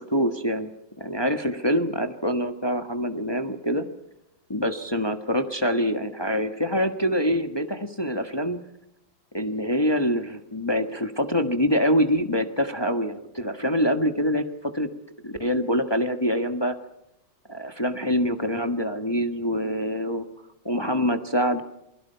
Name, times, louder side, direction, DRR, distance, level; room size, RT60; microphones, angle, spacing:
voice 1, 0.1-0.7 1.0-3.9 4.5-8.6 9.3-14.9 15.2-16.7 17.5-20.2 20.6-21.6, equal, 15° left, 7 dB, 1.2 m, -25 dB
28.5 x 21.5 x 5.7 m, 0.86 s
omnidirectional pair, 2.0 m